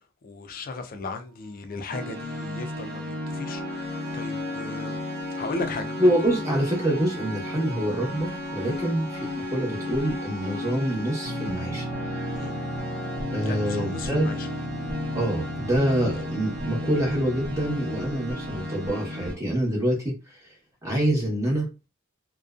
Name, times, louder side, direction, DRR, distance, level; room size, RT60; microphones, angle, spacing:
voice 1, 0.2-5.9 8.6-8.8 12.4-12.5 13.5-14.5, left 3 dB, 45° left, 0.4 m, -36 dB
sound 1, 1.3-19.1, right 1 dB, 20° left, 1.0 m, -46 dB
sound 2, 1.9-19.3, left 2 dB, 50° right, 0.9 m, -34 dB
voice 2, 6.0-11.8 13.3-14.3 15.1-20.4 20.8-21.7, right 1 dB, 15° right, 0.9 m, -26 dB
sound 3, 11.2-18.7, right 3 dB, 70° right, 0.4 m, -38 dB
2.5 x 2.2 x 2.4 m
head